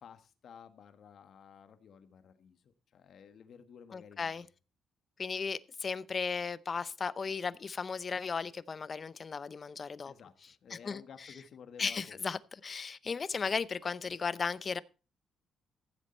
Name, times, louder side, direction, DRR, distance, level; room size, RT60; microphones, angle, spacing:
voice 1, 0.0-4.5 10.0-12.2, left 7 dB, 60° left, 1.5 m, -54 dB
voice 2, 3.9-4.4 5.2-10.1 10.7-11.0 11.8-14.8, left 5 dB, 40° left, 0.6 m, -35 dB
15.0 x 7.4 x 4.4 m
cardioid pair, 90°, 0 cm